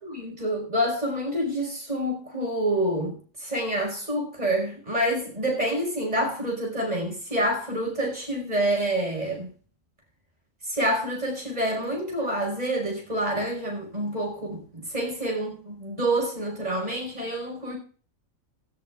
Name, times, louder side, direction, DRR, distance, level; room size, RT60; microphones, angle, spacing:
voice 1, 0.0-9.5 10.7-17.8, right 1 dB, 30° right, 5.6 m, -27 dB
17.0 x 13.5 x 2.5 m
omnidirectional pair, 1.4 m